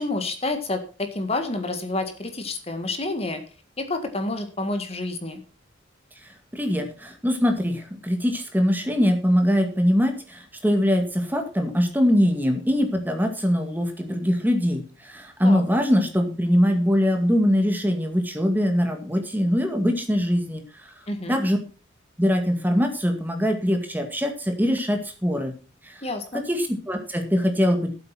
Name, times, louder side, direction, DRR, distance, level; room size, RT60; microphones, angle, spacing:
voice 1, 0.0-3.4 3.8-5.4 15.4-15.6 21.1-21.4 26.0-26.4, left 2 dB, 30° left, 7 dB, 1.8 m, -29 dB
voice 2, 6.5-20.6 21.3-21.6 22.2-25.5 25.8-25.9 26.3-27.9, equal, 10° right, 5 dB, 2.0 m, -22 dB
13.5 x 8.1 x 5.9 m, 0.35 s
head